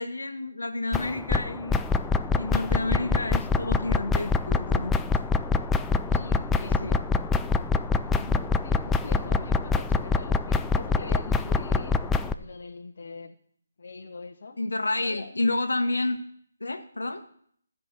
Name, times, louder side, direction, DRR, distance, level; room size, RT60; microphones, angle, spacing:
voice 1, 0.0-1.8 2.4-4.9 6.6-7.0 14.6-16.2 16.6-17.2, left 2 dB, 75° left, 7 dB, 1.3 m, -29 dB
sound 1, 0.9-12.3, left 4 dB, 10° left, 0.4 m, -25 dB
voice 2, 6.1-7.1 8.0-11.9 12.3-13.3 13.8-14.6 15.0-15.3, left 4 dB, 55° left, 3 dB, 1.2 m, -42 dB
12.5 x 5.4 x 8.4 m, 0.63 s
figure-of-eight pair, 150°, 0 cm